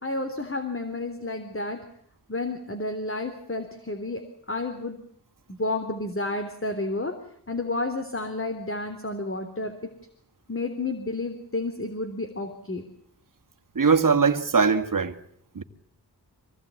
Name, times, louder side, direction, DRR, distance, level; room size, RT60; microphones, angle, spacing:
voice 1, 0.0-1.8 2.3-4.2 4.5-5.0 5.6-7.2 7.5-9.8 10.5-12.8, left 2 dB, 30° left, 3.6 m, -31 dB
voice 2, 13.8-15.2 15.6-15.7, right 5 dB, 55° right, 2.2 m, -21 dB
26.5 x 19.5 x 8.5 m
wide cardioid pair, 80°, 40 cm